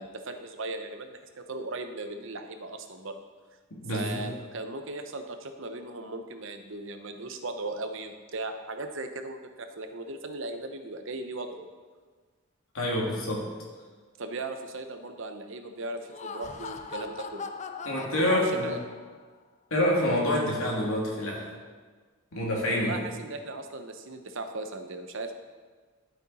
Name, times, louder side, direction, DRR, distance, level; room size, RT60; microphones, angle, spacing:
voice 1, 0.0-3.2 3.9-11.7 14.2-17.5 18.3-18.8 22.8-25.3, right 2 dB, 60° right, 7 dB, 0.8 m, -37 dB
voice 2, 3.7-4.3 12.7-13.5 17.8-18.7 19.7-21.5 22.3-23.0, left 1 dB, 75° left, -3 dB, 2.7 m, -27 dB
Laughter, 15.9-19.2, left 4 dB, 35° left, 0.5 m, -40 dB
11.5 x 8.0 x 4.2 m, 1.5 s
head